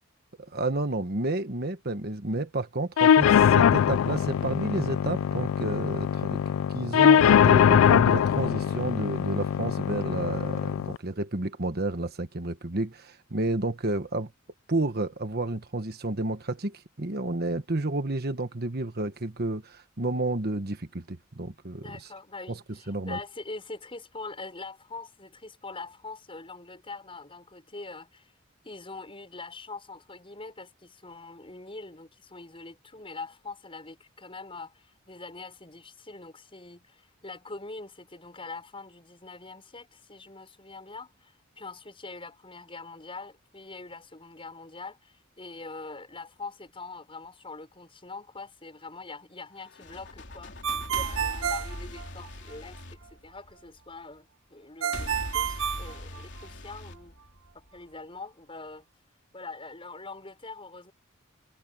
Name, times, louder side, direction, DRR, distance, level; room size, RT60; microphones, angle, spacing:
voice 1, 0.4-6.4 6.7-14.3 14.7-22.1 22.5-22.6 22.9-23.2, right 2 dB, 50° right, 1.4 m, -31 dB
sound 1, 3.0-11.0, left 8 dB, 75° left, 0.3 m, -22 dB
voice 2, 21.8-28.3 28.6-50.5 50.9-52.8 53.1-57.2 57.5-58.8 59.3-60.9, left 3 dB, 25° left, 6.2 m, -43 dB
sound 2, 49.6-53.8 54.9-57.8, left 1 dB, 60° left, 3.5 m, -40 dB
Ringtone, 50.6-52.6 54.8-56.7, right 9 dB, 70° right, 1.3 m, -30 dB
head